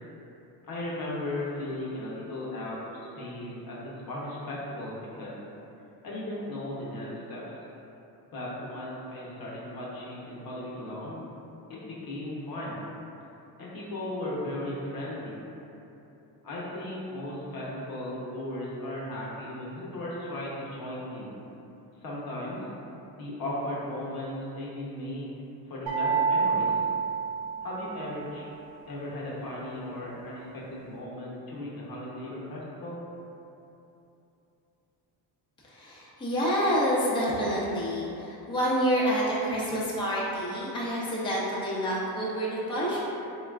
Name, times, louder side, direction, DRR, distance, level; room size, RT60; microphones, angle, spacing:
voice 1, 0.6-2.9 3.1-5.3 6.0-7.4 8.3-11.2 11.7-12.8 13.6-15.4 16.4-21.3 22.0-22.7 23.2-25.3 25.7-26.7 27.6-28.5 28.9-33.0, left 1 dB, 50° left, -6 dB, 0.9 m, -36 dB
sound 1, 25.9-28.0, right 5 dB, 85° right, 1.0 m, -27 dB
voice 2, 35.7-43.0, equal, 10° left, -8 dB, 0.6 m, -28 dB
3.6 x 2.3 x 2.3 m, 2.9 s
supercardioid pair, 65°, 46 cm